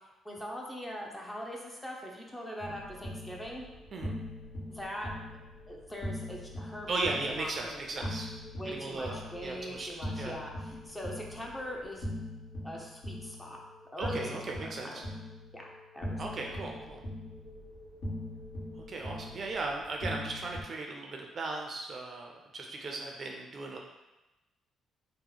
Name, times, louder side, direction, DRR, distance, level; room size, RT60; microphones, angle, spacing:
voice 1, 0.2-3.7 4.7-5.1 5.7-8.1 8.6-12.1 12.6-13.6 13.9-15.0 15.5-15.7 15.9-16.2, equal, 10° left, -1 dB, 0.6 m, -41 dB
sound 1, 2.6-20.6, left 1 dB, 55° left, 1.2 m, -42 dB
voice 2, 6.9-8.3 8.7-10.4 14.0-15.0 16.2-17.0 18.9-23.8, right 3 dB, 45° right, 1 dB, 0.5 m, -37 dB
2.9 x 2.1 x 3.9 m, 1.0 s
cardioid pair, 90°, 0 cm